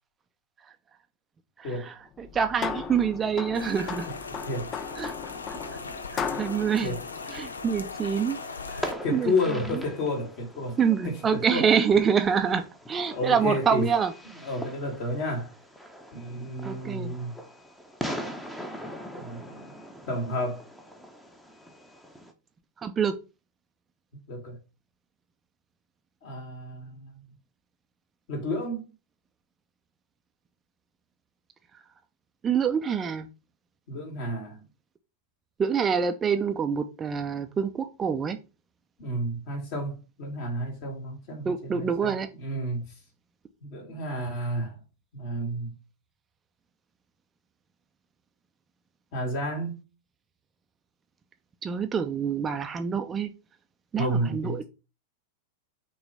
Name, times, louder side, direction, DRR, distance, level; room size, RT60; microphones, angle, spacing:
sound 1, 2.2-8.0, left 6 dB, 30° left, 0.5 m, -37 dB
voice 1, 2.2-4.1 5.0-5.1 5.5-5.6 6.1-7.0 7.3-8.4 8.7-9.3 10.8-12.6 12.9-14.1 16.6-17.1 22.8-23.1 32.4-33.3 35.6-38.4 41.5-42.3 51.6-53.3 53.9-54.6, right 7 dB, 20° right, 0.5 m, -26 dB
Rain, 3.5-8.9, left 4 dB, 75° left, 0.6 m, -39 dB
voice 2, 4.3-4.9 6.8-7.0 9.0-10.8 11.0-11.7 12.5-12.6 13.1-13.9 14.4-15.5 16.1-17.3 19.2-19.8 20.1-20.6 24.3-24.6 26.2-27.2 28.3-28.9 33.9-34.6 39.0-42.9 43.6-44.8 45.1-45.7 49.1-49.8 54.0-54.6, left 1 dB, 45° left, 2.9 m, -31 dB
Fireworks, 8.1-22.3, equal, 5° left, 1.0 m, -41 dB
5.9 x 3.2 x 5.3 m
figure-of-eight pair, 90°, 0 cm